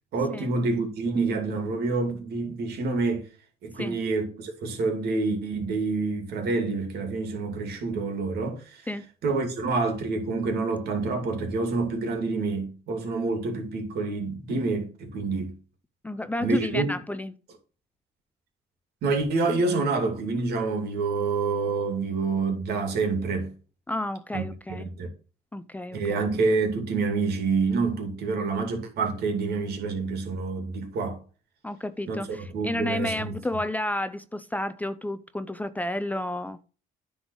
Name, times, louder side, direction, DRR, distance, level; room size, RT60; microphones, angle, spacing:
voice 1, 0.1-3.3 3.6-8.8 9.2-15.6 16.4-16.9 19.0-23.5 24.3-25.1 25.9-31.2 32.1-32.2 32.5-33.4, right 3 dB, 70° right, 2.5 m, -27 dB
voice 2, 16.0-17.4 23.9-24.9 25.5-26.3 31.6-36.6, left 1 dB, 10° left, 0.5 m, -31 dB
9.8 x 3.9 x 6.3 m
cardioid pair, 110°, 17 cm